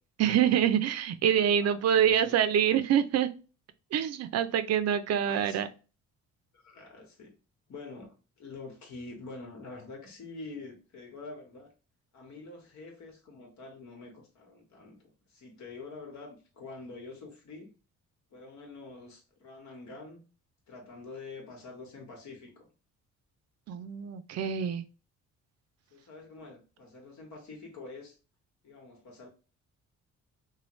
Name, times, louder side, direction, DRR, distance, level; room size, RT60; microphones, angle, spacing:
voice 1, 0.2-3.3 3.9-5.7 23.7-24.8, right 9 dB, 60° right, 0.4 m, -26 dB
voice 2, 1.6-2.3 5.2-5.6 6.5-7.3 7.7-11.7 12.1-17.7 18.3-20.2 20.7-22.7 25.9-28.2 28.6-29.3, left 3 dB, 70° left, 1.3 m, -46 dB
3.1 x 2.2 x 3.0 m
cardioid pair, 90°, 30 cm